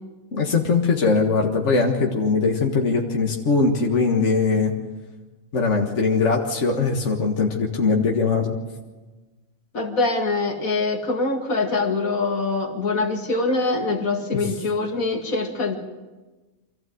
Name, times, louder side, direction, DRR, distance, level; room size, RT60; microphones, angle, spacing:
voice 1, 0.3-4.7 5.5-8.6 14.3-14.5, left 4 dB, 55° left, 0 dB, 2.0 m, -21 dB
voice 2, 9.7-15.8, left 3 dB, 75° left, 3 dB, 2.6 m, -24 dB
25.5 x 15.0 x 7.9 m, 1.2 s
omnidirectional pair, 1.5 m